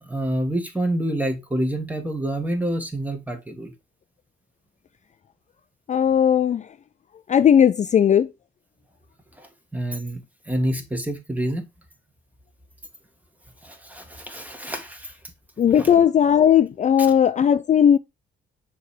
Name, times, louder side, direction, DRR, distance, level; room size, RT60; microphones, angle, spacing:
voice 1, 0.0-3.7 9.4-11.6 13.6-15.1 15.8-15.9 17.0-17.1, right 1 dB, 10° right, 1.7 m, -28 dB
voice 2, 5.9-6.6 7.3-8.3 15.6-18.0, left 9 dB, 35° left, 0.4 m, -17 dB
6.4 x 3.4 x 4.9 m
cardioid pair, 90°, 20 cm